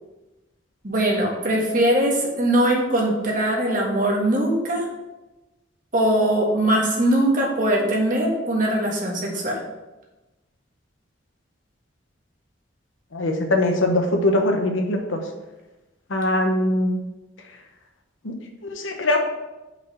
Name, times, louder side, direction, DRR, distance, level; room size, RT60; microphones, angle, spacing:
voice 1, 0.8-4.8 5.9-9.6, right 1 dB, 45° right, -2 dB, 1.6 m, -21 dB
voice 2, 13.1-15.2 16.1-17.0 18.2-18.3 18.6-19.2, left 1 dB, 85° left, 4 dB, 1.0 m, -21 dB
5.6 x 4.8 x 5.5 m, 1.1 s
head